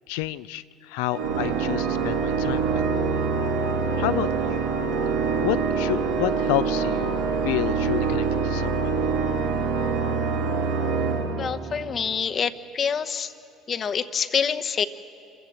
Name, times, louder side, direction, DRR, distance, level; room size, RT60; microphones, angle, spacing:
voice 1, 0.1-2.8 4.0-4.6 5.4-7.2 7.4-8.9, left 15 dB, 80° left, 14 dB, 0.5 m, -29 dB
Organ, 1.1-12.1, right 5 dB, 85° right, 1.5 m, -25 dB
voice 2, 11.4-13.3 13.7-14.8, left 7 dB, 45° left, 9 dB, 0.9 m, -26 dB
26.5 x 15.0 x 7.5 m, 2.7 s
hypercardioid pair, 75°, 0 cm